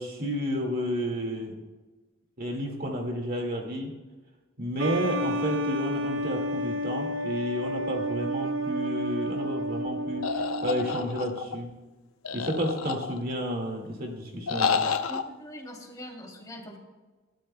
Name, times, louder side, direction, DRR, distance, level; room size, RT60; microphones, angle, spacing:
voice 1, 0.0-1.5 2.4-3.9 4.6-11.7 12.3-14.8, equal, 45° right, 1 dB, 2.0 m, -31 dB
sound 1, 4.8-11.1, equal, 65° right, 0.8 m, -31 dB
sound 2, 10.2-11.6 12.2-13.4 14.5-15.2, left 5 dB, 85° left, 0.7 m, -29 dB
voice 2, 15.1-16.8, equal, 20° left, 0 dB, 2.8 m, -42 dB
28.0 x 12.5 x 2.2 m, 1.2 s
head